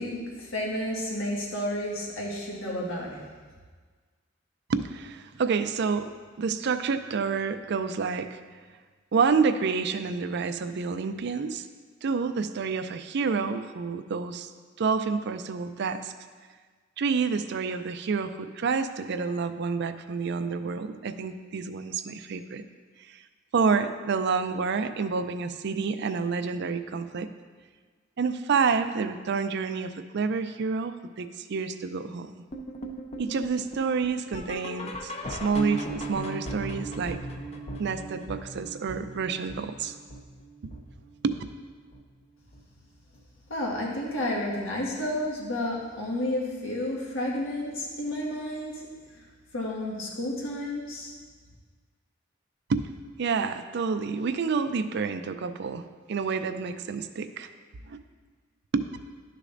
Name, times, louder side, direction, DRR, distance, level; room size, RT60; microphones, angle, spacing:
voice 1, 0.0-3.3 43.5-48.8 49.1-49.3 49.5-51.1, left 1 dB, 90° left, -3 dB, 1.7 m, -31 dB
voice 2, 4.7-8.4 9.1-11.7 12.0-14.5 14.8-16.1 17.0-22.6 23.1-23.2 23.5-27.3 28.2-32.4 33.2-37.2 37.8-40.0 40.6-40.7 41.2-41.4 52.7-52.9 53.2-55.8 56.1-57.5 57.8-58.0 58.7-58.9, right 5 dB, 60° right, 10 dB, 0.4 m, -28 dB
sound 1, 32.5-41.6 41.9-42.2 42.5-42.6 43.1-43.2 43.7-43.8, right 1 dB, 35° left, 0.6 m, -38 dB
11.5 x 6.6 x 2.6 m, 1.5 s
head